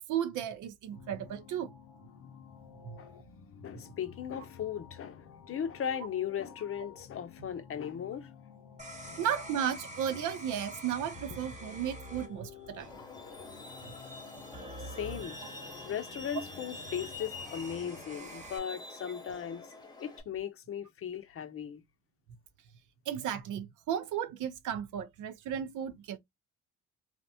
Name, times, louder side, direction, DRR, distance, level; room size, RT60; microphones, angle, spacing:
voice 1, 0.0-1.7 2.8-3.0 7.4-7.5 9.2-13.0 23.1-26.2, right 9 dB, 80° right, 0.6 m, -34 dB
sound 1, 0.9-18.2, left 7 dB, 90° left, 0.6 m, -52 dB
voice 2, 3.6-8.3 9.0-9.2 14.8-15.4 15.9-19.7 20.0-21.8, left 8 dB, 45° left, 0.6 m, -37 dB
sound 2, 8.8-18.6, right 1 dB, 25° right, 1.0 m, -47 dB
Truck, 12.8-20.2, left 2 dB, 15° left, 0.9 m, -47 dB
2.8 x 2.1 x 2.6 m
cardioid pair, 90°, 30 cm